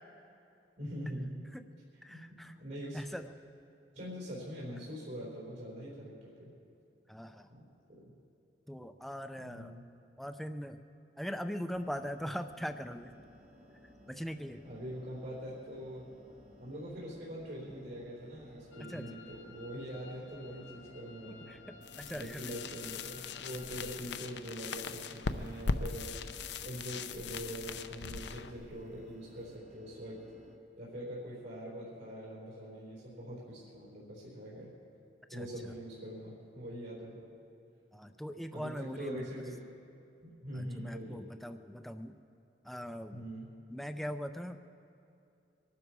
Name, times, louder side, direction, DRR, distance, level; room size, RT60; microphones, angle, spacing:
voice 1, 0.8-1.5 1.9-3.0 3.9-6.5 7.5-8.1 9.4-9.8 14.6-16.1 16.6-21.5 22.1-26.3 26.6-30.2 30.8-34.7 35.3-37.3 38.5-39.6 40.2-41.3 43.1-43.5, equal, 70° right, -8 dB, 4.3 m, -43 dB
voice 2, 2.0-2.5 2.9-3.2 7.1-7.5 8.7-9.8 10.2-10.8 11.2-13.2 14.1-14.6 18.9-19.0 21.5-21.6 22.0-22.7 35.3-35.5 37.9-39.3 40.6-42.2 42.6-43.2 43.7-44.6, equal, ahead, 8 dB, 0.5 m, -41 dB
sound 1, 11.7-30.6, equal, 35° right, 1.3 m, -58 dB
sound 2, 18.7-24.0, left 6 dB, 85° left, 1.1 m, -56 dB
sound 3, 21.8-29.6, left 4 dB, 65° left, 0.6 m, -40 dB
24.0 x 12.5 x 4.7 m, 2.7 s
head